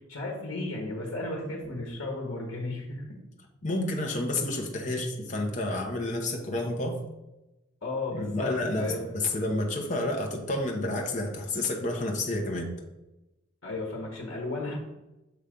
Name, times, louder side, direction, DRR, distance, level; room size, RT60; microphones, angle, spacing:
voice 1, 0.1-3.2 4.9-5.1 7.8-8.5 8.8-9.1 13.6-14.8, left 2 dB, 75° left, -1 dB, 1.3 m, -34 dB
voice 2, 3.6-7.0 8.1-12.7, left 2 dB, 35° left, 1 dB, 0.9 m, -30 dB
6.9 x 3.2 x 5.0 m, 1.0 s
head